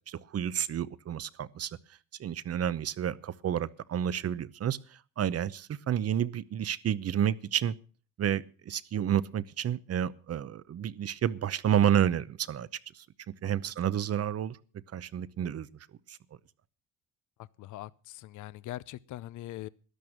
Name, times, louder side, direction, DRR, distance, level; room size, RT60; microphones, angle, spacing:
voice 1, 0.1-1.8 2.2-7.7 8.2-12.7 12.9-14.6 14.9-15.7 16.1-16.2, right 10 dB, 55° right, 0.8 m, -30 dB
voice 2, 17.6-19.7, left 15 dB, 80° left, 0.6 m, -41 dB
13.0 x 10.5 x 6.5 m
cardioid pair, 90°, 30 cm